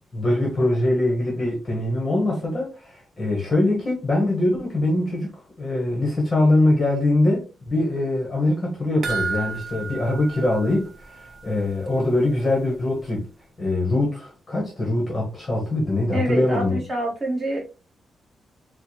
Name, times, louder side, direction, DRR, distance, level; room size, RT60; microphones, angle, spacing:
voice 1, 0.1-5.3 5.6-13.3 13.6-16.8, left 1 dB, 25° left, 1.0 m, -23 dB
sound 1, 9.0-11.6 11.9-12.0 12.4-12.5, right 5 dB, 45° right, 0.6 m, -32 dB
voice 2, 16.1-17.6, right 1 dB, 15° right, 1.5 m, -26 dB
4.5 x 2.1 x 2.9 m
wide cardioid pair, 165°, 0 cm